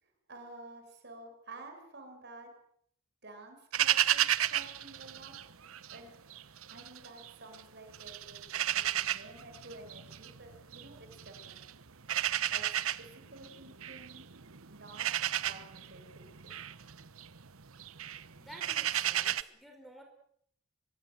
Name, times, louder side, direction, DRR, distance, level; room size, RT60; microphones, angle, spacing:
voice 1, 0.0-2.5 3.2-5.3 5.9-6.1 6.7-11.6 12.5-14.3 14.7-15.1 15.4-16.7, right 2 dB, 50° right, 5 dB, 6.9 m, -51 dB
sound 1, 3.7-6.0 6.3-7.6 7.9-19.4, right 11 dB, 70° right, 1.0 m, -33 dB
voice 2, 18.4-20.0, right 1 dB, ahead, 4 dB, 4.8 m, -52 dB
24.5 x 22.5 x 8.0 m, 0.67 s
head